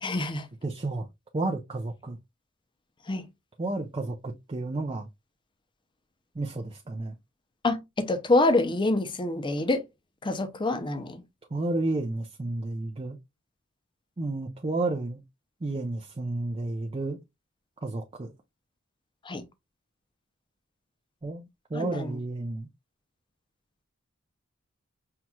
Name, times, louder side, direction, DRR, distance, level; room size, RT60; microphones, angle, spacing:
voice 1, 0.0-0.5 3.1-3.2 7.6-9.8 10.2-11.2 19.3-19.4 21.7-22.2, left 2 dB, 25° left, 0.6 m, -26 dB
voice 2, 0.6-1.1 1.3-2.2 3.6-5.1 6.4-7.1 11.5-13.2 14.2-15.2 15.6-17.2 17.8-18.3 21.2-22.7, right 2 dB, 25° right, 0.5 m, -31 dB
5.7 x 3.0 x 2.2 m
head